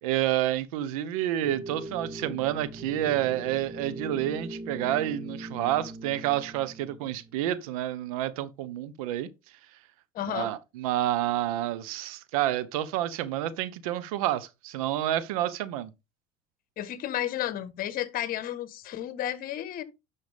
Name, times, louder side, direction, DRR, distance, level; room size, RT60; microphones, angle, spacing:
voice 1, 0.0-9.3 10.3-15.9, right 13 dB, 85° right, 1.1 m, -29 dB
sound 1, 1.4-7.5, right 1 dB, 25° right, 2.0 m, -40 dB
voice 2, 10.1-10.5 16.8-19.8, left 12 dB, 55° left, 1.4 m, -32 dB
11.0 x 5.7 x 3.5 m
supercardioid pair, 95°, 18 cm